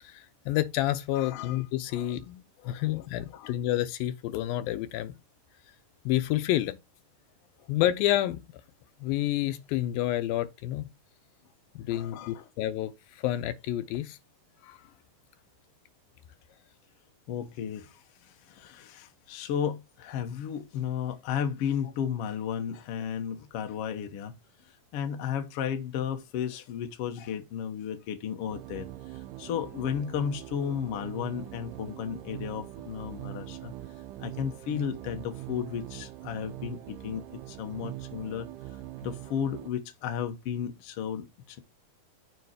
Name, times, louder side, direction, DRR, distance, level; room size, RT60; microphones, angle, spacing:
voice 1, 0.0-5.2 6.1-6.8 7.7-8.4 9.0-10.9 11.8-14.2 14.6-14.8, left 14 dB, 90° left, 2.5 m, -29 dB
voice 2, 1.1-1.6 1.9-2.1 2.6-2.8 3.3-3.5 7.6-7.7 11.9-12.4 17.3-24.4 24.9-33.7 34.2-38.5 39.0-41.6, left 8 dB, 70° left, 1.4 m, -34 dB
sound 1, 28.5-39.7, right 15 dB, 80° right, 1.9 m, -42 dB
6.9 x 3.9 x 5.0 m
omnidirectional pair, 4.1 m